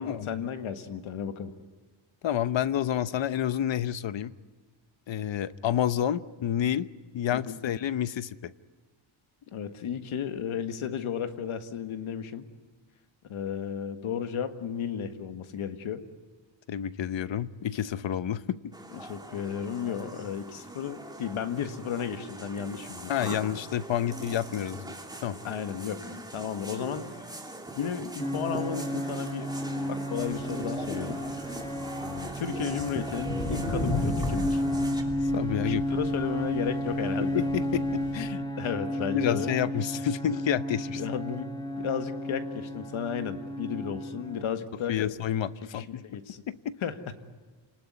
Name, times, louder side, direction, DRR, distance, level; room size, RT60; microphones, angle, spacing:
voice 1, 0.0-1.5 7.3-7.6 9.5-12.5 13.2-16.0 18.9-23.4 25.4-27.3 27.8-31.2 32.0-34.6 35.5-37.5 38.6-39.5 40.9-41.5 41.8-45.1 45.7-46.4 46.8-47.1, left 8 dB, 85° left, 9 dB, 1.8 m, -34 dB
voice 2, 2.2-4.3 5.1-6.9 7.1-8.5 16.7-18.4 23.1-24.9 25.2-25.4 35.3-35.8 37.2-38.4 39.1-41.0 44.9-46.2 46.5-46.7, left 10 dB, 65° left, 14 dB, 1.0 m, -29 dB
sound 1, 18.7-35.0, right 2 dB, 10° right, 2.7 m, -41 dB
sound 2, 28.2-44.4, equal, 10° left, 1.0 m, -32 dB
sound 3, 30.2-38.1, left 2 dB, 45° left, 7.0 m, -36 dB
28.0 x 20.0 x 9.6 m, 1.4 s
wide cardioid pair, 140°, 48 cm